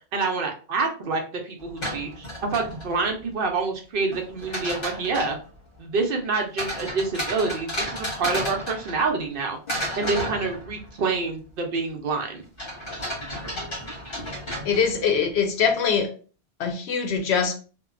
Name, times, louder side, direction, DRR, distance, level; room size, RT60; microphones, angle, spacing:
voice 1, 0.1-5.4 5.8-9.6 10.0-12.4, right 4 dB, 60° right, 0.7 m, -27 dB
sound 1, 1.6-3.1 4.1-5.4 6.6-9.3 9.7-11.0 12.6-15.1, equal, 55° left, 1.4 m, -33 dB
voice 2, 14.6-16.1 16.6-17.5, left 6 dB, 75° left, 0.9 m, -23 dB
2.8 x 2.2 x 2.4 m
omnidirectional pair, 1.1 m